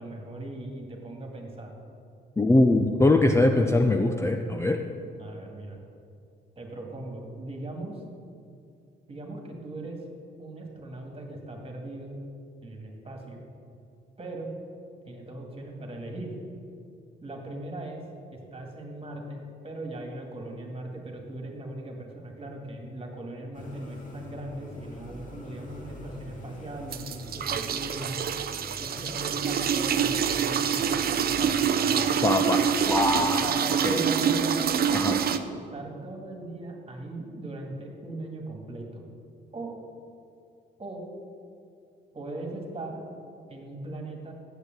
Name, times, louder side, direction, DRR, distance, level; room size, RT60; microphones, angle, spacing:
voice 1, 0.0-1.7 5.2-5.8 6.6-8.0 9.1-10.0 10.4-12.2 12.6-13.4 14.2-14.5 15.0-16.3 17.2-18.0 18.3-28.3 28.8-32.2 33.2-34.6 35.2-39.0 39.5-39.8 40.8-41.1 42.1-43.0 43.5-44.3, right 2 dB, 30° right, 1 dB, 2.1 m, -39 dB
voice 2, 2.4-4.8 32.2-33.5 33.8-34.0 34.9-35.2, left 2 dB, 15° left, 4 dB, 0.5 m, -22 dB
sound 1, 23.5-33.4, left 1 dB, 40° left, 2.2 m, -45 dB
sound 2, 26.9-35.4, right 7 dB, 50° right, 0.6 m, -26 dB
8.2 x 6.8 x 7.9 m, 2.4 s
cardioid pair, 90°, 20 cm